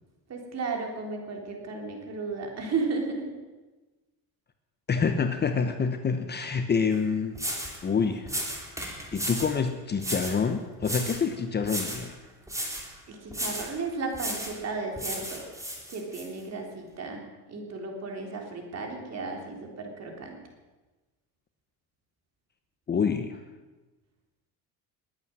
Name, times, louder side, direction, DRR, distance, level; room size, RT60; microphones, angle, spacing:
voice 1, 0.3-3.3 13.1-15.5 15.9-20.4, right 4 dB, 40° right, 2 dB, 3.7 m, -34 dB
voice 2, 4.9-7.4 7.8-8.3 9.1-12.1 22.9-23.4, left 5 dB, 25° left, 7 dB, 1.0 m, -27 dB
sound 1, 6.9-7.0 7.3-7.8 8.3-9.6 10.0-10.4 10.8-11.3 11.6-12.1 12.5-12.9 13.3-13.7 14.1-14.6 15.0-16.3, right 1 dB, 5° right, 3.0 m, -34 dB
20.5 x 8.6 x 7.6 m, 1.2 s
cardioid pair, 130°, 40 cm